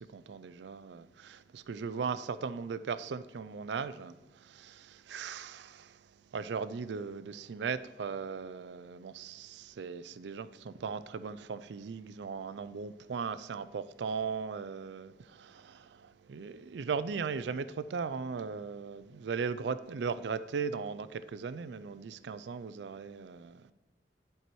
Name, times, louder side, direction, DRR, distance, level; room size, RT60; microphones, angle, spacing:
voice 1, 0.0-23.7, right 5 dB, 80° right, 0.4 m, -38 dB
11.0 x 4.7 x 4.5 m
head